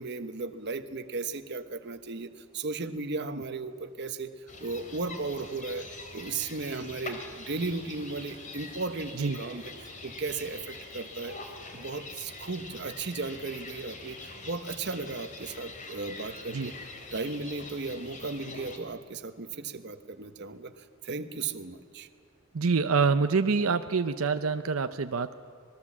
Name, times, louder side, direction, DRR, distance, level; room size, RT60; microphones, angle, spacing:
voice 1, 0.0-5.9 6.1-11.4 11.7-22.1, right 3 dB, 55° right, 9 dB, 1.1 m, -36 dB
sound 1, 4.5-18.8, left 3 dB, 40° left, 2.8 m, -44 dB
voice 2, 22.5-25.3, right 4 dB, 90° right, 9 dB, 0.7 m, -26 dB
26.0 x 20.5 x 7.4 m, 2.1 s
head